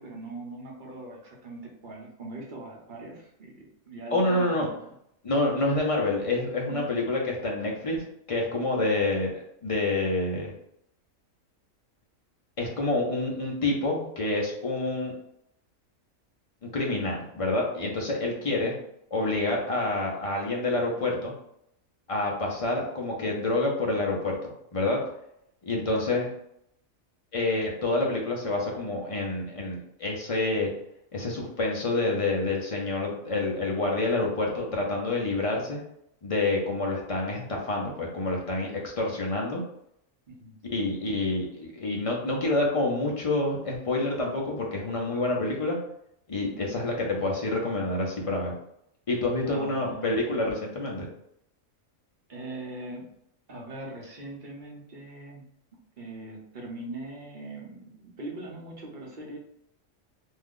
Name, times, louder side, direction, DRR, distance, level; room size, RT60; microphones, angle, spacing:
voice 1, 0.0-4.8 6.7-6.8 8.7-8.9 18.4-18.5 25.9-26.1 40.3-40.6 46.4-46.7 49.4-50.1 52.3-53.1 53.5-55.4 56.0-59.4, right 2 dB, 45° right, -2 dB, 0.8 m, -41 dB
voice 2, 4.1-4.7 5.2-10.5 12.6-15.1 16.7-18.7 19.1-21.3 22.1-25.0 25.7-26.3 27.3-30.7 31.1-35.8 36.2-39.6 40.6-45.8 46.3-48.5 49.1-51.1, left 2 dB, 40° left, -2 dB, 0.5 m, -28 dB
2.6 x 2.3 x 3.6 m, 0.75 s
omnidirectional pair, 1.4 m